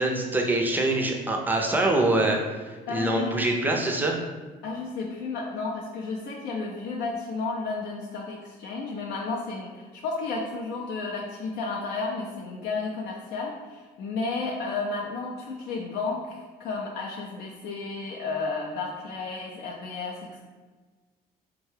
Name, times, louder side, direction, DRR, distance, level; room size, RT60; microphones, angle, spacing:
voice 1, 0.0-4.2, right 2 dB, 10° right, 1 dB, 0.4 m, -24 dB
voice 2, 2.9-3.5 4.6-20.4, left 3 dB, 75° left, -2 dB, 0.5 m, -32 dB
3.5 x 2.2 x 3.2 m, 1.3 s
cardioid pair, 110°, 17 cm